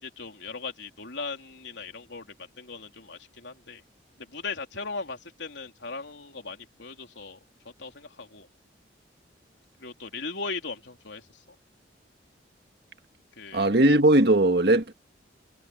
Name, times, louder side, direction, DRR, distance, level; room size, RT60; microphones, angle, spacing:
voice 1, 0.0-3.8 4.2-7.4 7.8-8.5 9.8-11.6 13.3-13.7, left 4 dB, 70° left, 3.6 m, -38 dB
voice 2, 13.5-14.9, right 1 dB, 55° right, 1.8 m, -19 dB
head